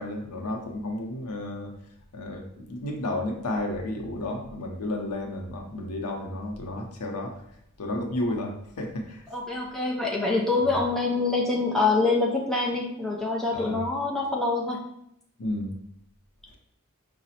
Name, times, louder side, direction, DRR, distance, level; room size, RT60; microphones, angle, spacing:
voice 1, 0.0-1.7 2.1-7.4 7.8-9.2 13.5-13.8 15.4-15.7, left 1 dB, 90° left, 2 dB, 0.6 m, -32 dB
voice 2, 9.3-14.8, left 3 dB, ahead, -3 dB, 0.4 m, -25 dB
4.8 x 2.0 x 2.7 m, 0.76 s
head